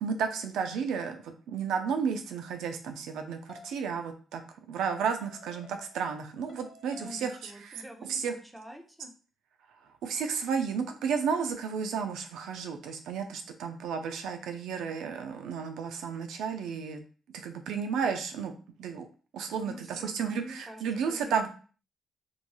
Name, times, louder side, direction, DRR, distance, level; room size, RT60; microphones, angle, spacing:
voice 1, 0.0-4.4 4.7-7.8 8.1-8.3 10.0-17.0 17.3-18.5 18.8-19.1 19.3-21.5, right 6 dB, 85° right, 6 dB, 0.4 m, -32 dB
sound 1, 3.5-3.8 4.8-6.2 6.5-7.4, left 4 dB, 45° left, 0.5 m, -52 dB
voice 2, 6.9-9.1 19.6-21.5, equal, 10° right, 3 dB, 0.6 m, -47 dB
2.9 x 2.6 x 2.2 m, 0.39 s
cardioid pair, 90°, 0 cm